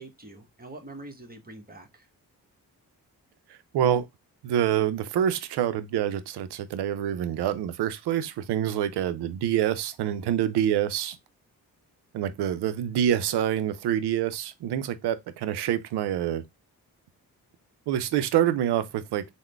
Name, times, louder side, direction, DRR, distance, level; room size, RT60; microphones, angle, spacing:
voice 1, 0.0-2.1, right 2 dB, 25° right, 1.1 m, -44 dB
voice 2, 3.7-4.1 4.4-11.2 12.1-16.4 17.9-19.3, right 10 dB, 80° right, 0.5 m, -26 dB
3.6 x 2.1 x 3.2 m
supercardioid pair, 45°, 40 cm